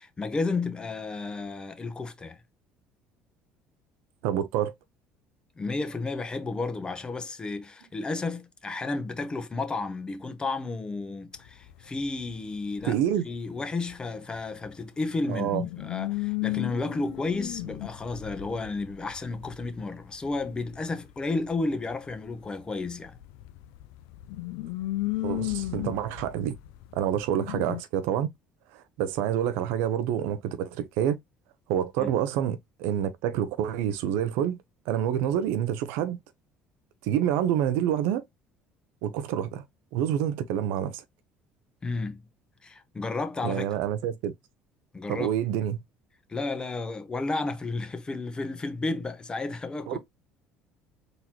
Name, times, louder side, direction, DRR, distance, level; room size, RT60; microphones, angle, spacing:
voice 1, 0.0-2.4 5.6-13.0 13.2-23.2 32.0-32.1 41.8-42.2 42.6-43.7 44.9-45.3 46.3-50.0, left 3 dB, 25° left, 0.9 m, -32 dB
voice 2, 4.2-4.7 12.8-13.2 15.3-15.6 25.2-26.6 26.9-28.3 28.7-31.2 31.7-34.6 34.9-36.2 37.0-38.2 39.0-39.6 39.9-41.0 43.4-44.3 45.1-45.8 49.9-50.0, right 10 dB, 80° right, 0.6 m, -27 dB
sound 1, 11.4-11.7 12.1-12.9 13.9-14.0 14.4-14.5 14.7-14.8 15.4-22.6 22.9-27.8, left 18 dB, 80° left, 0.4 m, -35 dB
4.0 x 3.0 x 2.9 m
supercardioid pair, 90°, 4 cm